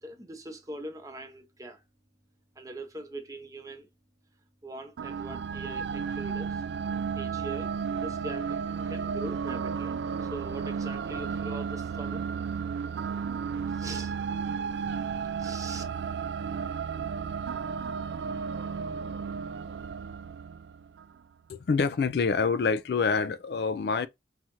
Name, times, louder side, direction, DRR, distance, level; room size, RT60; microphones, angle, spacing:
voice 1, 0.0-1.8 2.6-3.9 4.6-6.6 7.1-7.7 8.0-8.5 8.9-10.0 10.2-12.2 13.7-14.1 15.4-15.8, right 2 dB, 20° right, 0.8 m, -41 dB
sound 1, 5.0-21.2, right 6 dB, 80° right, 0.3 m, -33 dB
voice 2, 21.5-24.1, left 5 dB, 65° left, 0.4 m, -26 dB
5.5 x 2.5 x 3.0 m
head